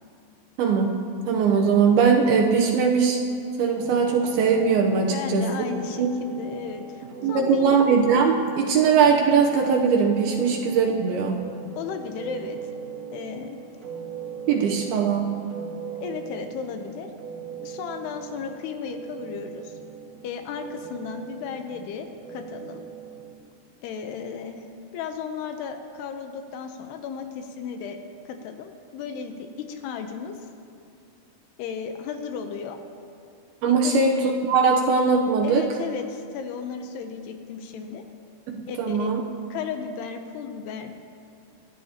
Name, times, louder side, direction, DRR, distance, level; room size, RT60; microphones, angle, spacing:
voice 1, 0.6-1.0 1.3-3.2 3.6-5.5 6.0-6.1 7.2-11.4 14.5-15.3 33.6-35.7 38.5-39.2, right 5 dB, 75° right, 1 dB, 2.5 m, -20 dB
sound 1, 3.7-23.3, right 6 dB, 50° right, 2.2 m, -40 dB
voice 2, 5.1-7.7 10.4-10.5 11.8-12.6 13.1-13.6 16.0-17.1 17.6-19.8 20.2-22.8 23.8-24.7 24.9-28.0 28.3-30.4 31.6-32.8 33.7-34.1 35.4-38.1 38.7-39.1 39.5-40.9, left 6 dB, 80° left, 6 dB, 2.7 m, -35 dB
27.5 x 11.5 x 2.9 m, 2.4 s
omnidirectional pair, 5.0 m